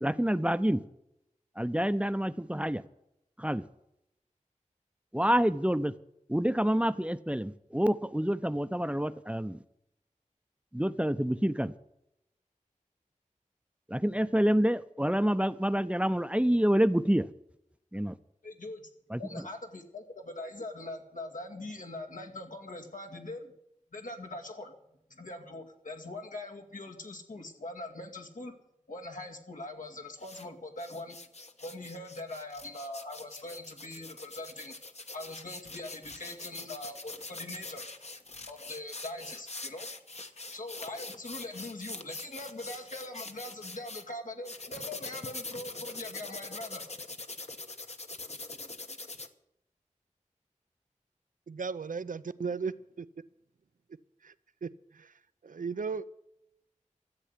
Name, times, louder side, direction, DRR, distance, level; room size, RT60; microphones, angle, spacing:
voice 1, 0.0-0.8 1.6-2.8 3.4-3.6 5.1-5.9 6.3-9.6 10.7-11.7 13.9-17.3 17.9-18.1 19.1-19.2, equal, 10° right, 0.7 m, -27 dB
voice 2, 18.4-18.9 19.2-23.5 23.9-24.7 25.1-28.5 28.9-31.2 31.6-34.7 35.1-37.8 38.5-39.9 40.5-46.8, left 2 dB, 80° left, 2.2 m, -42 dB
sound 1, 30.2-30.4 30.8-44.0 44.4-49.3, left 3 dB, 55° left, 1.2 m, -43 dB
voice 3, 51.5-52.7 54.2-54.3 54.6-55.1 55.4-56.0, right 5 dB, 80° right, 0.6 m, -35 dB
13.5 x 8.2 x 9.9 m
wide cardioid pair, 40°, 13 cm